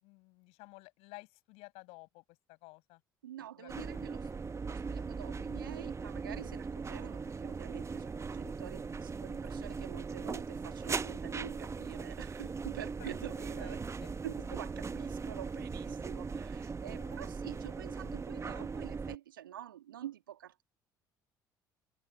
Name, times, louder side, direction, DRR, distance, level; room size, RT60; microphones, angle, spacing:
voice 1, 0.0-3.0 3.6-4.4 13.0-13.1 13.4-14.1 16.9-17.2, left 25 dB, 70° left, 5.7 m, -54 dB
voice 2, 3.2-13.8 14.2-20.6, right 12 dB, 85° right, 1.7 m, -47 dB
sound 1, 3.7-19.2, right 5 dB, 25° right, 1.0 m, -39 dB
hypercardioid pair, 55°, 11 cm